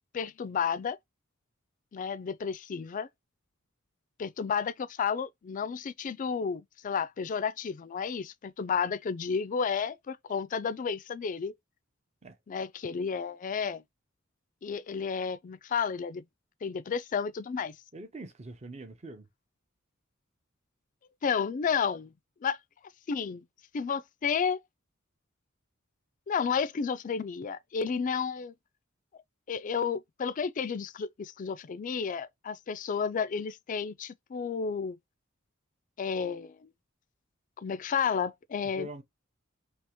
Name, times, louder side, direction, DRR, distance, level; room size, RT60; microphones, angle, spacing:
voice 1, 0.1-1.0 1.9-3.1 4.2-11.5 12.5-13.8 14.6-16.2 16.6-17.7 21.2-22.1 22.4-22.6 23.1-23.4 23.7-24.6 26.3-28.5 29.5-35.0 36.0-36.7 37.6-38.9, left 6 dB, 40° left, 0.3 m, -32 dB
voice 2, 17.9-19.3 38.7-39.0, right 1 dB, 35° right, 0.6 m, -43 dB
3.4 x 2.9 x 2.9 m
head